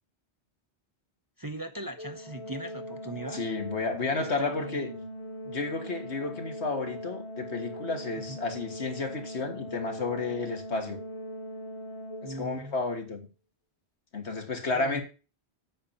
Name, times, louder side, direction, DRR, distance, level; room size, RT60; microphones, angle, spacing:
voice 1, 1.4-3.5 4.2-5.1 8.1-8.4 12.2-12.8 14.7-15.0, right 1 dB, 25° right, 0.6 m, -40 dB
Organ, 2.0-12.8, equal, 30° left, 1.0 m, -40 dB
voice 2, 3.3-4.9 5.4-11.0 12.2-13.3 14.1-15.0, left 3 dB, 85° left, 2.0 m, -32 dB
8.7 x 5.4 x 7.1 m
omnidirectional pair, 1.1 m